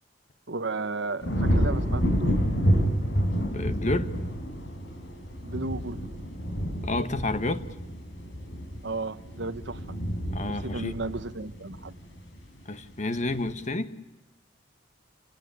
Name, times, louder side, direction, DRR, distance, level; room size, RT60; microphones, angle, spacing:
voice 1, 0.5-2.4 5.4-6.0 8.8-9.8 10.5-11.9, right 3 dB, 65° right, 1.1 m, -34 dB
sound 1, 1.2-12.5 12.9-13.4, equal, 70° left, 4.6 m, -29 dB
voice 2, 3.4-4.1 6.8-7.7 10.3-10.9 12.6-14.0, left 2 dB, 40° left, 1.4 m, -30 dB
29.5 x 17.5 x 9.6 m
head